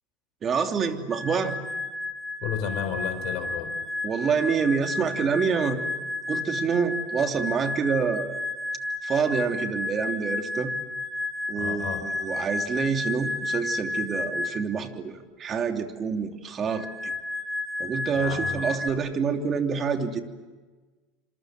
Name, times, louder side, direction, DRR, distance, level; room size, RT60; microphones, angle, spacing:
voice 1, 0.4-1.6 4.0-5.8 6.3-8.3 9.0-10.7 11.5-17.1 17.8-20.2, right 6 dB, 35° right, 5 dB, 3.1 m, -27 dB
sound 1, 1.1-14.8 16.7-18.9, left 2 dB, ahead, 2.6 m, -32 dB
voice 2, 2.4-3.7 11.6-12.0 18.1-18.7, left 8 dB, 60° left, 7 dB, 4.2 m, -32 dB
27.0 x 27.0 x 7.7 m, 1.3 s
hypercardioid pair, 95°, 0 cm